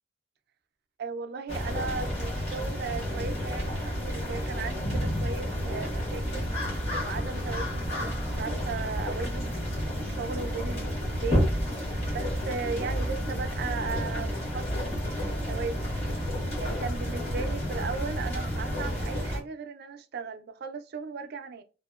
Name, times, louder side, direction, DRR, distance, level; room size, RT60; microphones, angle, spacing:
voice 1, 1.0-6.5 7.0-11.4 12.1-14.9 15.3-16.1 16.6-21.6, right 5 dB, 55° right, 0.4 m, -37 dB
sound 1, 1.5-19.4, equal, 35° left, 1.3 m, -30 dB
2.8 x 2.1 x 2.3 m
head